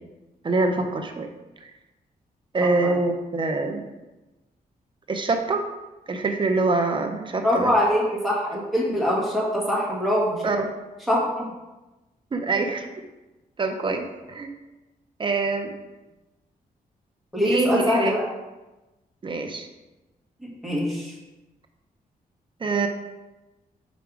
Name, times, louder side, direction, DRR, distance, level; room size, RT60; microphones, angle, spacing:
voice 1, 0.4-1.3 2.5-3.9 5.1-5.7 6.1-7.7 10.4-10.7 12.3-12.9 13.6-14.5 15.2-15.7 17.4-18.1 19.2-19.7 22.6-22.9, right 3 dB, 30° right, 5 dB, 0.6 m, -25 dB
voice 2, 7.4-10.5 11.1-11.4 17.3-18.2 20.4-21.2, equal, ahead, -5 dB, 1.6 m, -23 dB
5.1 x 4.7 x 4.7 m, 1.1 s
wide cardioid pair, 135°, 16 cm